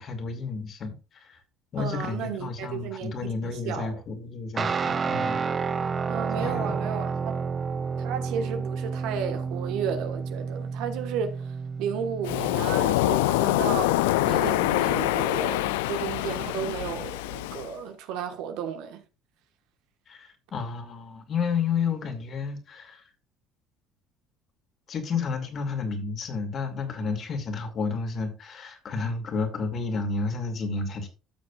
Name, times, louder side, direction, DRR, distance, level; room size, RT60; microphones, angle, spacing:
voice 1, 0.0-1.4 1.7-5.8 6.4-6.8 20.1-23.0 24.9-31.1, left 4 dB, 50° left, 2.4 m, -31 dB
voice 2, 1.8-4.0 6.1-7.4 8.0-14.0 14.2-19.0, right 7 dB, 75° right, 1.4 m, -33 dB
Guitar, 4.6-12.7, right 5 dB, 35° right, 0.7 m, -30 dB
Waves surf, 12.2-17.7, left 17 dB, 85° left, 0.3 m, -25 dB
12.5 x 6.5 x 2.4 m
supercardioid pair, 80°, 0 cm